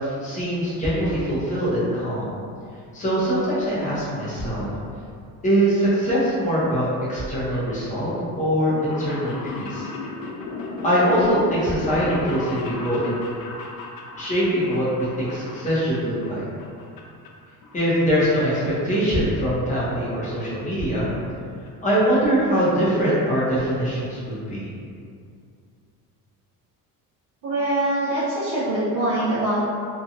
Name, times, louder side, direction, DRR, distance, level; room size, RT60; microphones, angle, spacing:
voice 1, 0.0-2.3 2.9-4.7 5.4-9.9 10.8-13.2 14.2-16.4 17.7-21.1 21.8-24.7, equal, 20° left, -9 dB, 0.8 m, -23 dB
sound 1, 8.7-16.3 16.6-17.3 17.6-18.7 18.9-19.0 20.0-20.1 20.2-20.3 20.6-20.7 21.0-21.3 21.7-21.8 21.9-22.0, left 3 dB, 70° left, 0.5 m, -36 dB
voice 2, 27.4-29.6, right 1 dB, 60° right, -12 dB, 0.8 m, -23 dB
2.8 x 2.3 x 2.5 m, 2.4 s
cardioid pair, 155°, 37 cm